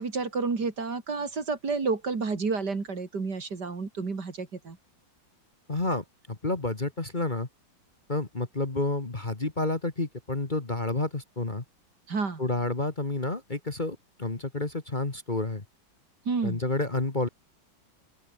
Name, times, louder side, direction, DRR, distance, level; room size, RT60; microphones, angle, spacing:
voice 1, 0.0-4.8 12.1-12.4 16.2-16.6, right 4 dB, 60° right, 3.5 m, -30 dB
voice 2, 5.7-7.5 8.1-11.6 12.4-15.6 16.4-17.3, left 2 dB, 25° left, 2.0 m, -30 dB
open air
omnidirectional pair, 2.1 m